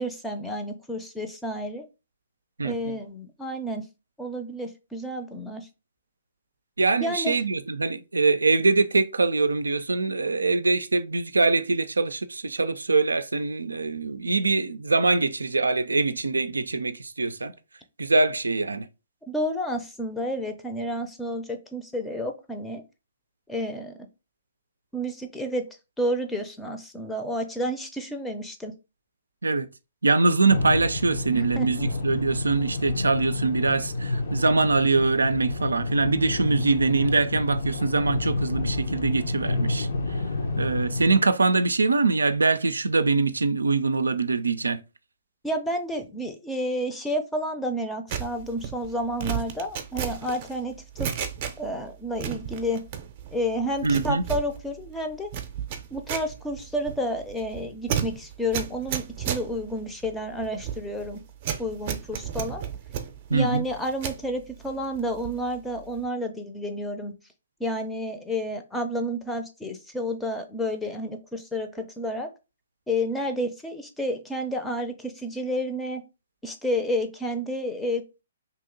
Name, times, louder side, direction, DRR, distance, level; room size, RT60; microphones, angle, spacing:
voice 1, 0.0-1.8 2.6-3.9 4.2-5.7 7.0-7.4 19.3-22.8 23.5-24.0 24.9-25.6 26.0-28.7 31.3-31.9 45.4-51.2 51.6-52.8 53.3-55.3 55.9-61.2 61.6-62.6 63.3-67.1 67.6-72.3 72.9-76.0 76.4-78.0, equal, 5° left, 0.6 m, -30 dB
voice 2, 2.6-2.9 6.8-17.5 18.0-18.9 29.4-29.7 30.0-39.9 40.6-44.8 53.8-54.2 63.3-63.7, right 3 dB, 85° right, 0.4 m, -23 dB
sound 1, 30.5-41.2, left 2 dB, 65° left, 0.8 m, -29 dB
sound 2, 48.1-51.9 52.1-53.3 53.6-64.2 64.7-65.5 65.8-66.1, right 9 dB, 40° right, 0.6 m, -33 dB
2.9 x 2.7 x 3.8 m
figure-of-eight pair, 125°, 0 cm